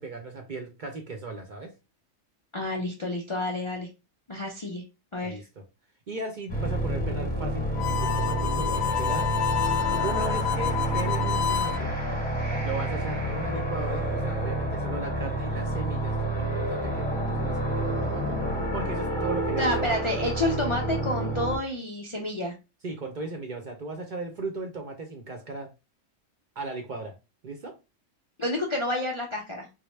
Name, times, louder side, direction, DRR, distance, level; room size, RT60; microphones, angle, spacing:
voice 1, 0.0-1.7 5.2-5.4 6.1-7.7 8.0-9.3 9.9-11.9 12.6-18.4 18.7-20.0 22.8-25.7 26.6-27.1 27.4-27.7, right 3 dB, 50° right, 3 dB, 0.6 m, -37 dB
voice 2, 2.5-3.9 4.3-4.8 5.1-5.4 19.6-22.5 28.4-29.7, left 1 dB, 45° left, 0 dB, 0.4 m, -29 dB
sound 1, 6.5-21.6, right 1 dB, 5° left, 1.0 m, -29 dB
Harmonica, 7.7-11.8, left 9 dB, 65° left, 0.8 m, -28 dB
4.3 x 2.0 x 3.1 m, 0.27 s
omnidirectional pair, 1.3 m